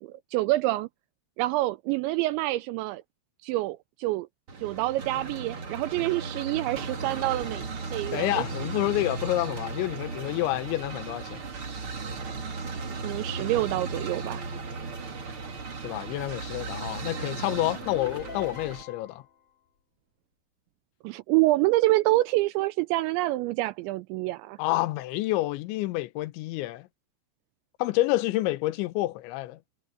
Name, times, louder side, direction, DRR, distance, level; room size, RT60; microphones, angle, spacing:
voice 1, 0.0-0.9 1.4-3.0 3.4-4.3 4.6-7.7 7.9-8.4 13.0-14.4 21.0-24.6, right 18 dB, 85° right, 2.7 m, -27 dB
sound 1, 4.5-18.8, right 4 dB, 35° right, 2.5 m, -36 dB
voice 2, 8.1-11.4 15.8-19.2 24.6-26.9 27.8-29.6, left 17 dB, 80° left, 3.1 m, -28 dB
sound 2, 17.8-19.3, left 7 dB, 45° left, 4.5 m, -42 dB
omnidirectional pair, 5.6 m